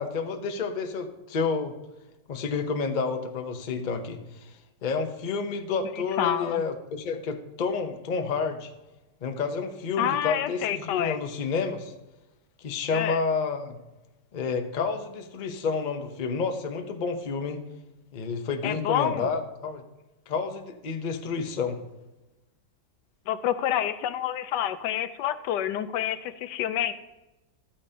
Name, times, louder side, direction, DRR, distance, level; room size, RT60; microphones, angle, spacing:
voice 1, 0.0-1.7 2.3-4.5 4.8-8.7 9.2-11.9 12.6-13.8 14.3-17.6 18.1-19.8 20.3-21.8, left 5 dB, 40° left, 6 dB, 0.6 m, -30 dB
voice 2, 6.2-6.6 10.0-11.2 12.9-13.2 18.6-19.3 23.3-26.9, left 10 dB, 80° left, 13 dB, 1.2 m, -28 dB
13.0 x 8.6 x 2.8 m, 1.0 s
omnidirectional pair, 1.9 m